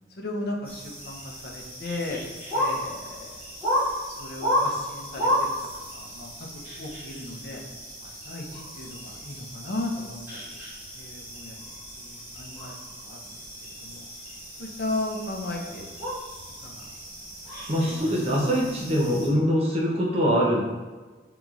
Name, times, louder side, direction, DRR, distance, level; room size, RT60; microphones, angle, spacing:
voice 1, 0.2-2.2 2.5-3.5 4.2-5.5 5.9-7.6 8.0-10.6 11.0-12.7 13.0-13.4 13.8-14.0 14.6-15.9 16.6-16.9 17.7-18.1, left 2 dB, 65° left, -1 dB, 0.6 m, -36 dB
sound 1, 0.6-19.3, equal, 10° right, 1.2 m, -33 dB
voice 2, 17.7-20.6, equal, 35° right, -3 dB, 0.7 m, -23 dB
5.2 x 2.9 x 2.4 m, 1.3 s
head